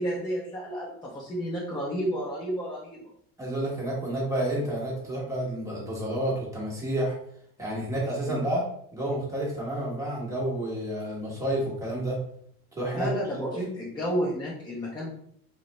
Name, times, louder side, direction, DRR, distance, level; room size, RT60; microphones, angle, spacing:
voice 1, 0.0-3.1 8.3-8.5 12.9-15.2, equal, 15° left, -6 dB, 0.6 m, -31 dB
voice 2, 3.4-7.1 7.6-8.6 8.9-12.2 12.7-13.1 13.5-13.7, right 1 dB, 10° right, -5 dB, 1.1 m, -30 dB
2.4 x 2.1 x 2.9 m, 0.65 s
supercardioid pair, 115°, 33 cm